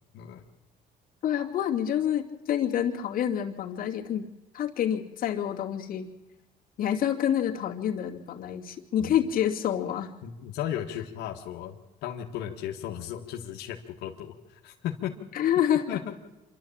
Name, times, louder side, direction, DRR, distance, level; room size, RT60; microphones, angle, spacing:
voice 1, 1.2-4.3 4.5-6.1 6.8-10.1 15.3-15.8, left 10 dB, 55° left, 0 dB, 2.6 m, -27 dB
voice 2, 10.2-15.1 15.9-16.1, left 10 dB, 90° left, 0 dB, 1.6 m, -35 dB
26.5 x 12.0 x 8.8 m, 1.1 s
cardioid pair, 110°, 17 cm